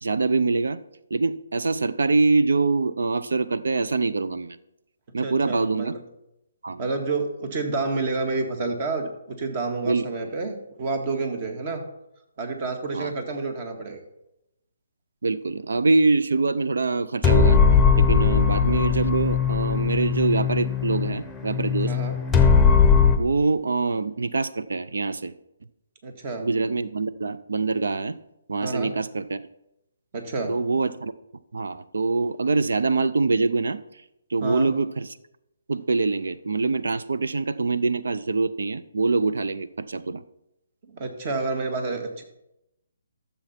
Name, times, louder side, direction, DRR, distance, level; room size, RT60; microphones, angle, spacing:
voice 1, 0.0-0.8 1.1-4.6 5.1-5.9 6.6-6.8 9.9-10.3 12.9-13.1 15.2-17.6 18.0-22.0 23.2-25.3 26.4-28.2 28.5-29.4 30.5-31.1 31.5-33.8 34.3-35.1 35.7-40.2, right 3 dB, 75° right, 14 dB, 0.5 m, -24 dB
voice 2, 5.2-6.0 6.8-11.8 12.4-14.0 21.9-22.2 26.0-26.5 28.6-28.9 30.1-30.5 34.4-34.7 40.8-42.2, right 3 dB, 40° right, 5 dB, 1.8 m, -29 dB
sound 1, 17.2-23.2, left 6 dB, 5° left, 0.9 m, -19 dB
13.5 x 7.0 x 4.3 m, 0.88 s
hypercardioid pair, 150°, 0 cm